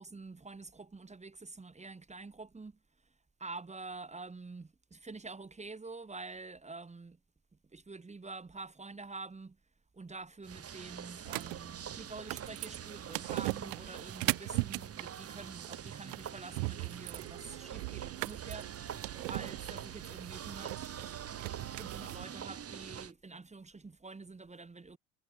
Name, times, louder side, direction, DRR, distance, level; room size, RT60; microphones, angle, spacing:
voice 1, 0.0-2.8 3.4-7.2 7.7-9.6 9.9-18.7 19.3-21.1 21.6-25.0, right 3 dB, 15° right, 2.5 m, -47 dB
sound 1, 10.4-23.1, right 8 dB, 35° right, 2.9 m, -45 dB
sound 2, 11.2-22.2, right 39 dB, 65° right, 1.4 m, -39 dB
hypercardioid pair, 70°, 41 cm